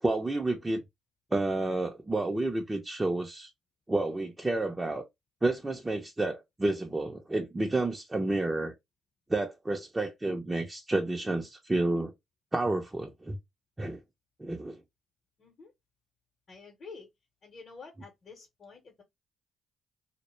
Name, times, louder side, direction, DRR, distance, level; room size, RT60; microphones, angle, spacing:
voice 1, 0.0-0.8 1.3-3.5 3.9-5.0 5.4-8.7 9.3-12.1 12.5-13.4 13.8-14.0 14.4-14.8, right 2 dB, 20° right, 0.5 m, -30 dB
voice 2, 15.4-15.7 16.5-17.1 17.4-19.0, left 4 dB, 50° left, 0.8 m, -49 dB
2.1 x 2.1 x 3.0 m
hypercardioid pair, 55°, 0 cm